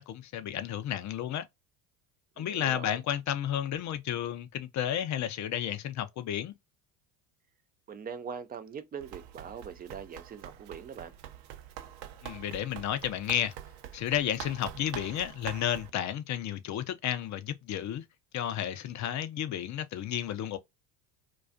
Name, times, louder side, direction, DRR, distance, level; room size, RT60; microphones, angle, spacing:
voice 1, 0.0-1.5 2.4-6.5 12.2-13.5 13.9-18.1 18.3-20.6, left 10 dB, 40° left, 0.5 m, -32 dB
voice 2, 2.4-3.0 7.9-11.1, right 6 dB, 20° right, 0.4 m, -42 dB
Run, 9.0-15.9, right 11 dB, 60° right, 0.6 m, -45 dB
2.3 x 2.3 x 2.4 m
hypercardioid pair, 70°, 47 cm